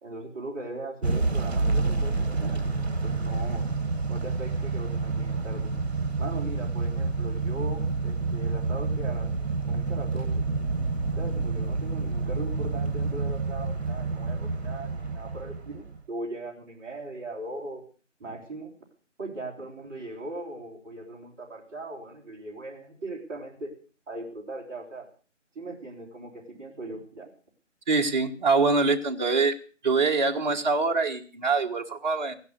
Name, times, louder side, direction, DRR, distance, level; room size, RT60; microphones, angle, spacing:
voice 1, 0.0-2.7 3.0-3.6 4.1-5.7 6.2-9.3 9.6-10.4 11.2-17.8 18.2-18.7 19.2-23.7 24.1-25.1 25.5-27.3, right 1 dB, 15° right, -5 dB, 3.2 m, -39 dB
Motor vehicle (road) / Engine starting / Accelerating revving vroom, 1.0-16.0, right 3 dB, 55° right, 2.0 m, -28 dB
voice 2, 27.9-29.5 29.8-32.3, right 4 dB, 35° right, 4 dB, 1.4 m, -24 dB
15.5 x 11.0 x 6.5 m, 0.40 s
figure-of-eight pair, 160°, 38 cm